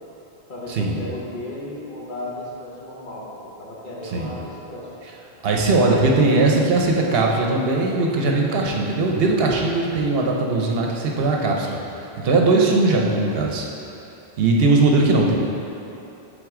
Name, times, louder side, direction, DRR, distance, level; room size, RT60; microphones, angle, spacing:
voice 1, 0.5-4.9 11.0-11.4, left 1 dB, 50° left, -5 dB, 1.1 m, -35 dB
voice 2, 5.4-11.8 12.2-13.7 14.4-15.4, right 3 dB, 65° right, 0 dB, 0.8 m, -19 dB
7.9 x 3.9 x 3.6 m, 2.9 s
omnidirectional pair, 1.1 m